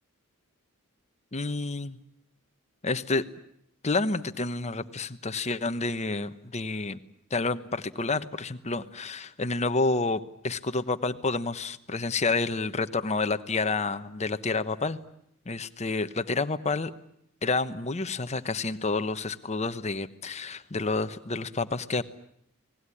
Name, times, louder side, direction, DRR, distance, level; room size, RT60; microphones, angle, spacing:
voice 1, 1.3-2.0 2.8-3.2 3.8-7.0 7.3-15.0 15.4-16.9 17.4-22.0, left 3 dB, 30° left, 10 dB, 1.1 m, -29 dB
29.5 x 19.5 x 9.9 m, 0.73 s
head